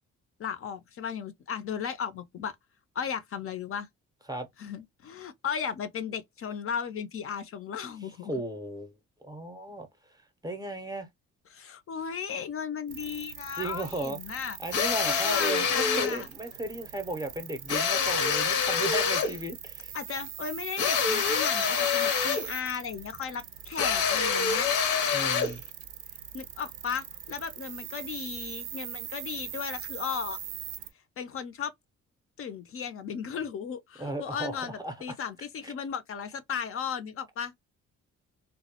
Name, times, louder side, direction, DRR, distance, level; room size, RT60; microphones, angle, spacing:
voice 1, 0.4-2.6 3.0-3.9 4.6-8.4 11.5-14.6 15.0-16.3 19.9-24.7 26.3-30.4 31.2-31.7 32.4-37.6, left 7 dB, 50° left, 0.4 m, -35 dB
voice 2, 8.2-8.9 9.2-9.9 10.4-11.1 13.6-14.2 14.6-19.9 25.1-25.6 34.0-35.7, right 1 dB, 15° right, 0.5 m, -35 dB
sound 1, 12.9-30.9, right 11 dB, 80° right, 0.5 m, -41 dB
sound 2, 14.7-16.2 17.7-19.4 20.8-22.5 23.8-25.6, left 6 dB, 85° left, 0.7 m, -26 dB
2.2 x 2.0 x 2.7 m
cardioid pair, 90°, 30 cm